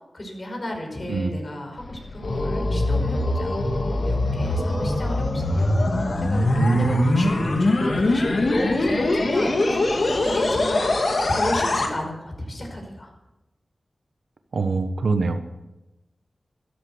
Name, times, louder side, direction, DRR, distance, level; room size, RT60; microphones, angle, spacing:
voice 1, 0.1-3.6 4.0-11.0 11.3-13.1, left 1 dB, 50° left, 2 dB, 5.4 m, -33 dB
sound 1, 1.8-11.9, left 2 dB, 70° left, 2.5 m, -22 dB
voice 2, 6.6-7.2 14.5-15.4, right 4 dB, 85° right, 8 dB, 1.1 m, -23 dB
13.5 x 11.5 x 7.9 m, 0.98 s
wide cardioid pair, 60°, 0 cm